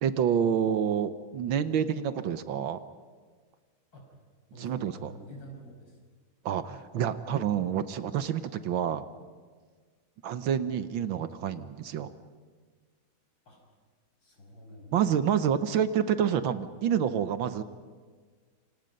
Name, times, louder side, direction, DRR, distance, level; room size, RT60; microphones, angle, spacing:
voice 1, 0.0-2.8 4.6-5.1 6.4-9.0 10.2-12.1 14.9-17.6, right 8 dB, 75° right, 11 dB, 1.7 m, -28 dB
voice 2, 4.5-6.0 13.5-13.6 14.2-15.4, equal, 65° left, 1 dB, 6.3 m, -49 dB
28.0 x 26.0 x 5.4 m, 1.5 s
omnidirectional pair, 2.2 m